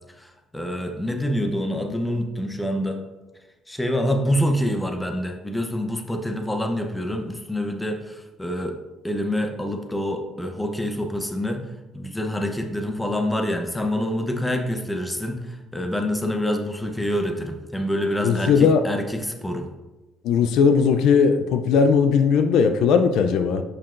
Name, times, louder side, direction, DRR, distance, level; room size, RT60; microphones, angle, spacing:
voice 1, 0.2-3.0 3.7-8.8 9.0-11.6 11.9-19.7, equal, 10° left, 4 dB, 0.7 m, -26 dB
voice 2, 18.2-18.8 20.2-23.6, left 6 dB, 85° left, 8 dB, 0.4 m, -18 dB
6.7 x 5.7 x 2.5 m, 1.1 s
cardioid pair, 105°, 0 cm